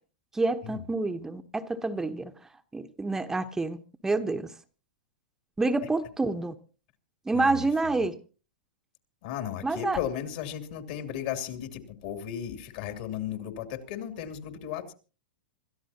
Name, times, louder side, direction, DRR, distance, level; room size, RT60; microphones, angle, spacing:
voice 1, 0.3-2.3 2.7-3.8 4.0-4.5 5.6-6.5 7.3-8.1 9.6-10.0, right 3 dB, 10° right, 1.0 m, -28 dB
voice 2, 7.3-7.9 9.2-14.9, left 10 dB, 60° left, 2.8 m, -35 dB
27.0 x 14.0 x 2.9 m
hypercardioid pair, 115°, 5 cm